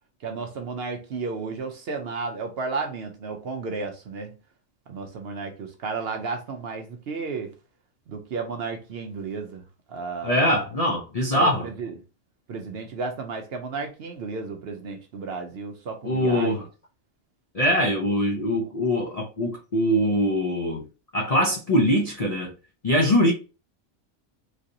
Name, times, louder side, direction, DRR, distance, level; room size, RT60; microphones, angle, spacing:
voice 1, 0.2-4.3 4.9-7.5 8.1-9.6 9.9-10.5 11.3-12.0 12.5-16.5, right 4 dB, 60° right, 0.7 m, -33 dB
voice 2, 10.2-11.7 16.0-16.6 17.5-20.9 21.1-22.5 22.8-23.3, equal, 60° left, 0.4 m, -22 dB
3.1 x 2.7 x 2.6 m
omnidirectional pair, 1.4 m